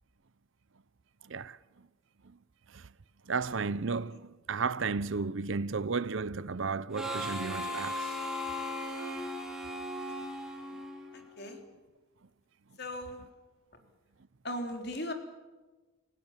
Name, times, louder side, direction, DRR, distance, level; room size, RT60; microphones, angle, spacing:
voice 1, 3.3-8.1, right 4 dB, 60° right, 0.6 m, -33 dB
Harmonica, 6.9-11.4, left 1 dB, 5° right, 3.1 m, -37 dB
voice 2, 12.8-13.2 14.4-15.1, left 1 dB, 50° left, 3.7 m, -37 dB
29.5 x 16.5 x 7.4 m
head